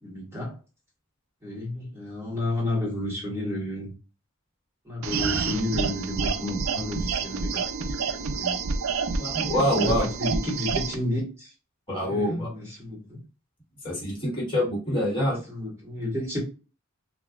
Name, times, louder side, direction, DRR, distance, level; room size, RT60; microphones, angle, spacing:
voice 1, 0.0-0.6 1.4-3.9 4.8-8.6 9.6-11.5 12.0-13.2 15.5-16.4, left 1 dB, 10° right, -3 dB, 1.3 m, -31 dB
sound 1, 5.0-11.0, right 5 dB, 75° right, 0.5 m, -28 dB
voice 2, 9.2-10.1 11.9-12.5 13.8-15.4, equal, 25° left, -5 dB, 1.5 m, -25 dB
4.0 x 2.4 x 2.3 m, 0.33 s
head